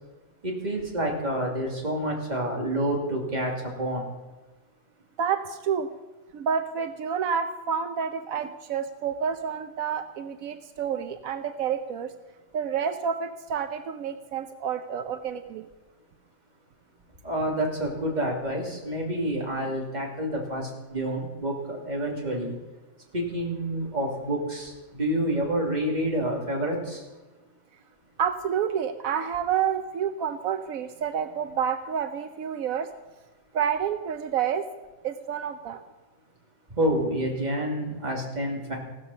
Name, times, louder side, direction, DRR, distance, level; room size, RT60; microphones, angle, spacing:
voice 1, 0.4-4.1 17.2-22.5 23.1-27.0 36.7-38.8, right 1 dB, 30° right, -1 dB, 2.9 m, -28 dB
voice 2, 5.2-5.9 6.3-12.1 12.5-15.7 28.2-32.9 33.5-34.6 35.0-35.8, right 7 dB, 85° right, 8 dB, 1.2 m, -29 dB
16.0 x 13.0 x 5.5 m, 1.2 s
omnidirectional pair, 1.4 m